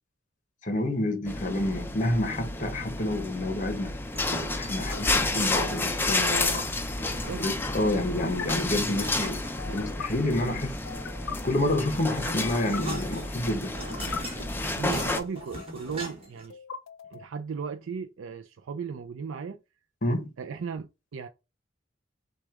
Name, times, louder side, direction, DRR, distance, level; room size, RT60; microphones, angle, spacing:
voice 1, 0.6-3.9 4.5-6.6 7.4-10.7 11.4-13.7 20.0-20.3, left 1 dB, 40° left, 0.9 m, -29 dB
sound 1, 1.3-15.2, left 2 dB, 10° left, 0.5 m, -31 dB
sound 2, 2.7-3.0 4.7-5.0 6.3-6.6 8.2-8.5 9.6-10.1 10.8-11.3 12.3-12.8 13.7-14.2 15.2-15.8 16.5-17.4, left 6 dB, 85° left, 0.5 m, -40 dB
sound 3, 4.0-5.4 6.8-7.8 8.8-10.2 11.4-16.5, equal, 30° right, 1.4 m, -40 dB
voice 2, 14.8-16.6 17.1-19.6 20.4-21.3, right 6 dB, 85° right, 0.4 m, -36 dB
6.1 x 2.3 x 3.6 m
head